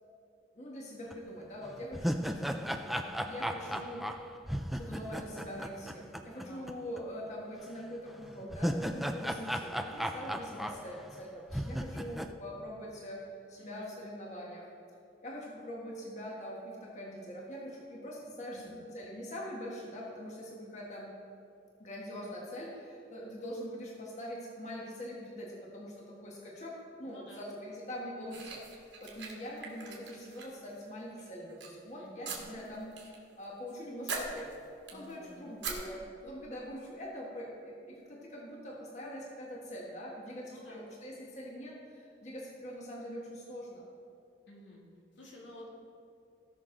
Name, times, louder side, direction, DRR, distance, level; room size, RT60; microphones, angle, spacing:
voice 1, 0.5-4.1 4.7-14.7 15.2-21.1 21.8-28.6 29.0-33.0 33.4-34.5 34.9-43.8, equal, 40° left, -3 dB, 1.5 m, -43 dB
sound 1, 1.1-1.2 1.7-6.7 7.0-7.1 8.2-11.2 11.5-12.3, equal, ahead, 0.3 m, -36 dB
voice 2, 13.6-13.9 18.5-18.7 27.0-27.5 32.0-32.3 34.9-35.6 40.4-40.8 44.5-44.8 45.2-45.7, left 1 dB, 90° left, -3 dB, 2.5 m, -52 dB
sound 2, 28.3-30.8 31.2-31.7 32.2-33.2 33.4-33.7 34.1-35.1 35.6-35.7, right 4 dB, 80° right, 2.1 m, -41 dB
17.5 x 6.2 x 3.9 m, 2.5 s
head